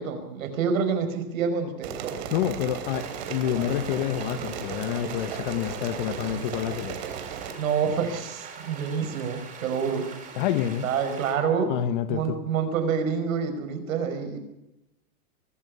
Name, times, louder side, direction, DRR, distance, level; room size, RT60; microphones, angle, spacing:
voice 1, 0.0-2.2 3.5-3.7 7.6-10.1 10.8-11.7 12.1-14.4, right 6 dB, 60° right, 5.5 m, -27 dB
sound 1, 1.8-7.5, right 9 dB, 40° right, 3.4 m, -36 dB
voice 2, 2.3-7.0 10.4-10.9 11.7-12.4, left 11 dB, 35° left, 1.1 m, -28 dB
sound 2, 2.9-11.3, right 5 dB, 15° right, 5.4 m, -43 dB
24.0 x 11.5 x 9.8 m
hypercardioid pair, 155°, 46 cm